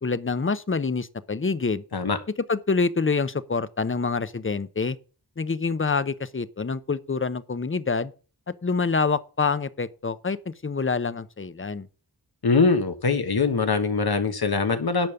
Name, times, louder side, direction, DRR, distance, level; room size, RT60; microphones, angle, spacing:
voice 1, 0.0-1.8 2.5-5.0 5.4-8.1 8.6-11.9, left 4 dB, 35° left, 0.8 m, -26 dB
voice 2, 12.4-15.1, left 4 dB, 75° left, 1.5 m, -22 dB
10.5 x 5.1 x 7.0 m
wide cardioid pair, 65°, 38 cm